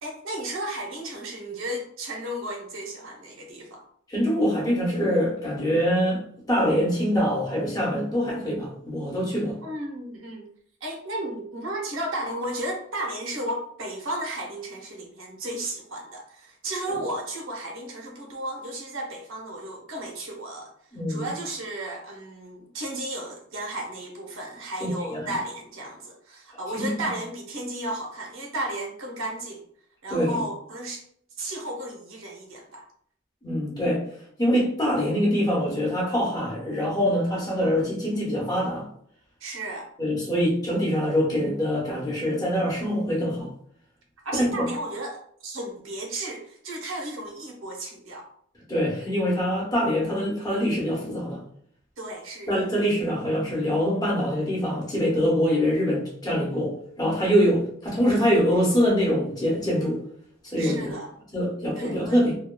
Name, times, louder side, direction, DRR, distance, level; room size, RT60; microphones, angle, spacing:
voice 1, 0.0-3.8 9.3-10.5 10.8-20.7 21.1-29.6 30.0-31.0 31.4-32.8 39.4-39.9 44.2-48.3 52.0-52.6 60.6-61.1 61.7-62.2, right 1 dB, 80° right, 0 dB, 0.7 m, -34 dB
voice 2, 4.1-6.2 6.5-9.5 20.9-21.3 24.8-25.2 26.7-27.0 30.1-30.4 33.4-34.0 34.4-38.8 40.0-43.5 44.3-44.5 48.7-51.4 52.5-60.0 60.5-60.9 61.3-62.4, equal, 20° left, -4 dB, 0.8 m, -24 dB
2.9 x 2.3 x 2.2 m, 0.65 s
head